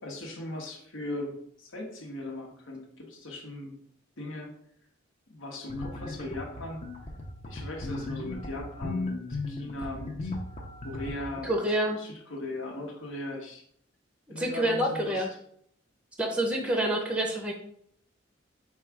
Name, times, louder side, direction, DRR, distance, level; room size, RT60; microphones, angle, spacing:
voice 1, 0.0-3.7 4.2-4.5 5.3-6.8 7.5-10.3 10.8-11.6 11.8-13.6 14.3-15.4, left 1 dB, 70° left, -1 dB, 1.1 m, -39 dB
sound 1, 5.7-11.4, left 2 dB, 30° left, 0.6 m, -36 dB
voice 2, 11.4-12.0 14.4-15.3 16.2-17.5, right 1 dB, 5° right, 3 dB, 0.6 m, -27 dB
4.6 x 2.3 x 4.6 m, 0.67 s
head